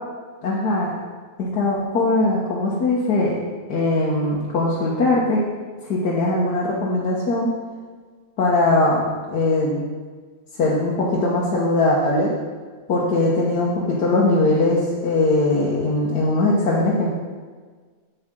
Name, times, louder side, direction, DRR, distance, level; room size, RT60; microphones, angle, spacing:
voice 1, 0.4-0.9 1.4-3.4 3.7-5.4 5.8-7.5 8.4-9.0 9.3-9.8 10.6-12.3 12.9-17.1, left 2 dB, 85° left, -5 dB, 1.8 m, -20 dB
8.5 x 8.1 x 3.7 m, 1.5 s
omnidirectional pair, 1.7 m